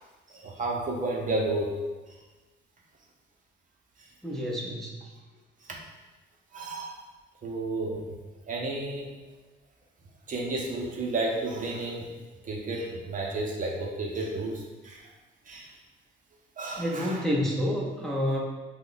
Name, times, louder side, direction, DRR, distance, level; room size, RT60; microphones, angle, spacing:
voice 1, 0.3-1.7 5.7-5.8 6.5-7.0 7.4-8.2 8.5-9.1 10.3-12.1 12.4-15.0 15.5-15.7 16.6-17.2, right 2 dB, 40° right, -1 dB, 0.6 m, -32 dB
voice 2, 4.2-4.9 16.8-18.4, equal, ahead, -4 dB, 0.5 m, -28 dB
2.9 x 2.1 x 3.9 m, 1.2 s
cardioid pair, 90°, 20 cm